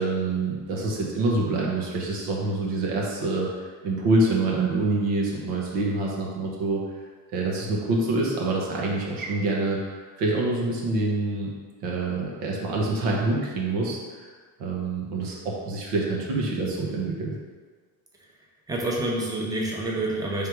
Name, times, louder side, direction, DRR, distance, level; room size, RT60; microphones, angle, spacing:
voice 1, 0.0-6.8 7.3-11.5 11.8-14.3 14.6-17.4, right 2 dB, 75° right, -2 dB, 1.2 m, -26 dB
voice 2, 18.2-20.5, right 1 dB, 10° right, -2 dB, 0.8 m, -28 dB
3.5 x 3.3 x 4.6 m, 1.5 s
supercardioid pair, 85°, 46 cm